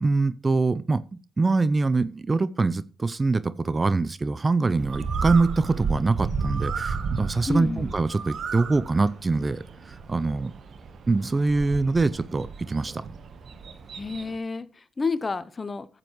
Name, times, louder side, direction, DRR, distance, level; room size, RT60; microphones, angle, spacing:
voice 1, 0.0-9.6 10.1-10.5 11.1-13.0, right 3 dB, 35° right, 0.6 m, -24 dB
Bird, 4.8-14.4, right 5 dB, 65° right, 1.2 m, -33 dB
voice 2, 7.5-7.9 13.9-15.9, left 3 dB, 35° left, 0.8 m, -30 dB
14.0 x 7.6 x 3.1 m
supercardioid pair, 55°, 0 cm